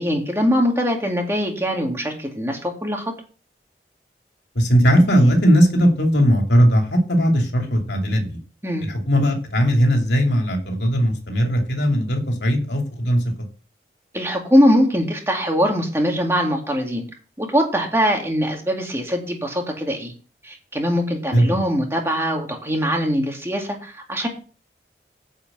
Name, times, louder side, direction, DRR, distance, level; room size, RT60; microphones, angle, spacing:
voice 1, 0.0-3.1 8.6-8.9 14.1-17.0 17.4-20.1 20.4-24.3, equal, 15° right, 1 dB, 2.2 m, -22 dB
voice 2, 4.5-8.4 8.8-13.2 21.3-21.6, equal, 80° left, 2 dB, 2.7 m, -18 dB
10.0 x 5.0 x 7.9 m, 0.36 s
head